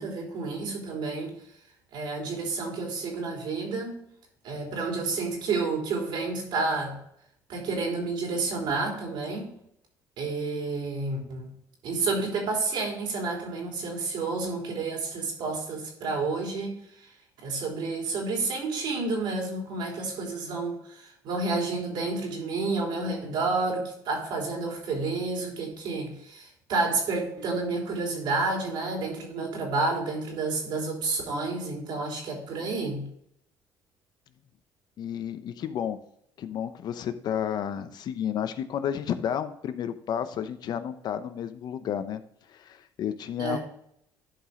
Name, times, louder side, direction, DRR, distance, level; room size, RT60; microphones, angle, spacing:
voice 1, 0.0-1.3 1.9-4.0 4.4-7.0 7.5-9.5 10.2-11.5 11.8-16.8 17.4-33.0 43.4-43.6, right 3 dB, 70° right, 0 dB, 3.5 m, -30 dB
voice 2, 35.0-36.0 36.4-42.2 42.5-43.6, left 9 dB, 60° left, 11 dB, 0.8 m, -31 dB
11.5 x 5.1 x 3.7 m, 0.73 s
cardioid pair, 95°, 8 cm